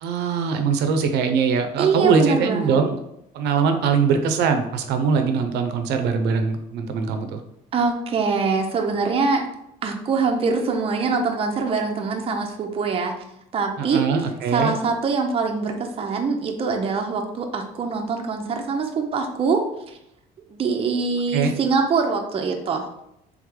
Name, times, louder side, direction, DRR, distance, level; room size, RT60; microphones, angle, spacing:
voice 1, 0.0-3.0 3.3-7.4 13.8-14.7 21.3-21.5, right 5 dB, 80° right, 6 dB, 0.5 m, -22 dB
voice 2, 1.8-2.8 7.7-9.4 9.8-13.2 13.5-14.0 14.5-20.0 20.5-22.9, right 4 dB, 35° right, 3 dB, 0.6 m, -23 dB
3.4 x 3.1 x 3.6 m, 0.82 s
cardioid pair, 110°, 17 cm